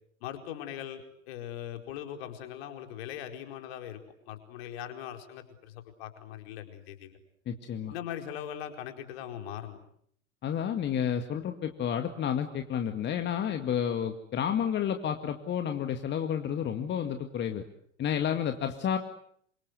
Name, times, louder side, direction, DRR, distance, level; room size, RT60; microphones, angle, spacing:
voice 1, 0.2-4.0 4.3-7.2 7.9-9.8, left 10 dB, 55° left, 5 dB, 4.7 m, -40 dB
voice 2, 7.5-7.9 10.4-17.7 18.0-19.0, left 8 dB, 30° left, 6 dB, 2.1 m, -30 dB
28.0 x 25.5 x 8.2 m, 0.66 s
figure-of-eight pair, 85°, 37 cm